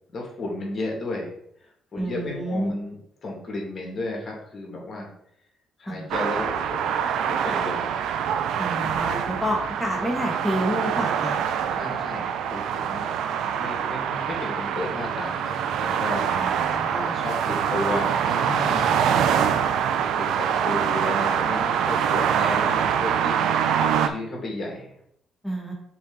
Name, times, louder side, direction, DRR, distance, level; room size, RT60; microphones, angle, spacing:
voice 1, 0.1-1.3 1.9-5.1 5.8-7.0 7.3-7.9 8.8-9.1 11.7-12.2 12.5-13.1 13.5-15.6 15.8-16.3 16.9-19.8 20.2-24.9, left 2 dB, 45° left, -1 dB, 2.4 m, -33 dB
voice 2, 2.0-2.7 5.9-6.1 8.6-11.4 16.3-17.1 25.4-25.7, equal, 5° right, 0 dB, 1.3 m, -29 dB
sound 1, 6.1-24.1, right 8 dB, 80° right, 0.5 m, -24 dB
6.0 x 4.3 x 4.0 m, 0.71 s
cardioid pair, 90°, 0 cm